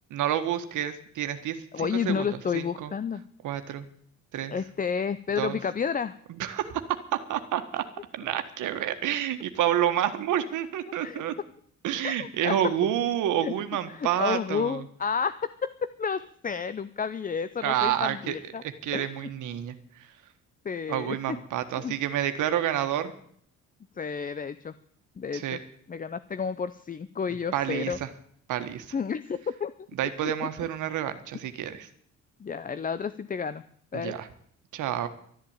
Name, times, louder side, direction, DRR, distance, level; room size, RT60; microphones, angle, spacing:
voice 1, 0.1-2.9 3.4-3.9 4.3-4.6 5.4-5.6 6.3-6.8 7.1-7.8 8.1-11.3 11.8-14.9 17.6-20.1 20.9-23.1 25.3-25.6 27.5-28.1 28.5-28.9 30.0-31.9 33.9-34.3 34.7-35.1, right 11 dB, 80° right, 9 dB, 1.5 m, -29 dB
voice 2, 1.7-3.2 4.5-6.1 11.0-11.2 12.0-12.6 13.4-13.5 13.9-15.7 16.0-18.6 18.9-19.1 20.6-21.4 21.8-21.9 24.0-24.7 25.2-25.6 25.9-28.0 28.9-29.7 32.4-33.6 33.9-34.1, left 6 dB, 30° left, 14 dB, 0.6 m, -31 dB
12.5 x 10.5 x 8.9 m, 0.62 s
cardioid pair, 90°, 30 cm